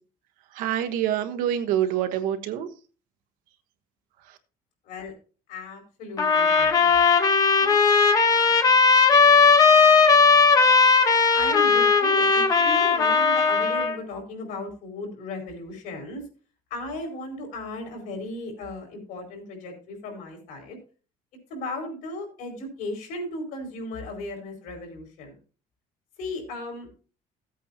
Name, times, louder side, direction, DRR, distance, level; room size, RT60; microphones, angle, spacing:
voice 1, 0.5-2.7, right 10 dB, 70° right, 7 dB, 1.2 m, -26 dB
voice 2, 5.5-6.9 7.6-7.8 8.4-8.7 11.3-16.2 16.7-20.8 21.5-25.4 26.2-26.9, left 2 dB, 75° left, 3 dB, 4.7 m, -36 dB
sound 1, 6.2-14.0, left 4 dB, 25° left, 0.9 m, -18 dB
16.0 x 8.2 x 2.9 m, 0.36 s
cardioid pair, 175°, 15 cm